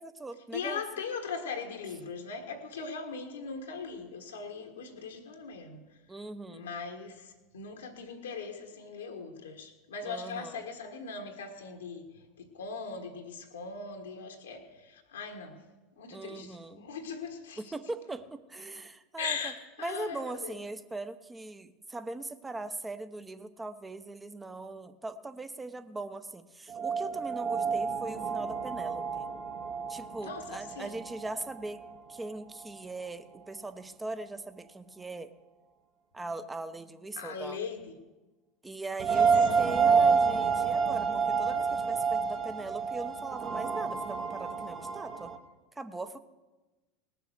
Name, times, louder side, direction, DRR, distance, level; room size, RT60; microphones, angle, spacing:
voice 1, 0.0-0.8 6.1-6.7 10.0-10.6 16.1-16.8 17.6-19.5 19.8-29.3 29.9-31.8 32.1-35.3 36.1-37.6 38.6-45.3 45.7-46.2, right 2 dB, 15° right, 0.9 m, -40 dB
voice 2, 0.5-5.8 6.5-15.6 16.0-17.6 19.2-20.5 30.2-31.0 37.2-37.8 39.1-39.6, left 5 dB, 80° left, 1.5 m, -40 dB
sound 1, 26.7-32.3 32.6-32.7 39.0-45.4, right 5 dB, 40° right, 1.4 m, -29 dB
19.5 x 6.9 x 6.4 m
hypercardioid pair, 80°, 0 cm